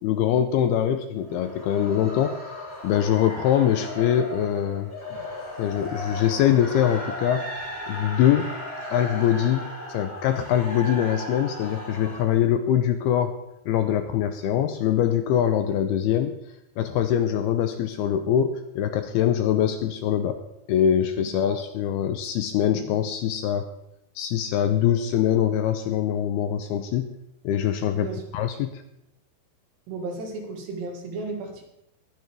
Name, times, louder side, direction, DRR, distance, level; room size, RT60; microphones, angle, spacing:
voice 1, 0.0-2.5 2.8-4.9 5.6-7.5 7.9-8.6 8.9-13.3 13.7-16.4 16.8-20.4 20.7-23.7 24.2-27.1 27.4-28.1 28.3-28.8, left 10 dB, 80° left, 8 dB, 2.4 m, -23 dB
sound 1, 1.2-12.2, left 1 dB, 10° left, 2.6 m, -36 dB
voice 2, 21.2-21.6 27.9-28.2 29.9-31.6, right 3 dB, 70° right, 2 dB, 4.1 m, -34 dB
21.5 x 9.4 x 3.6 m, 0.82 s
omnidirectional pair, 5.1 m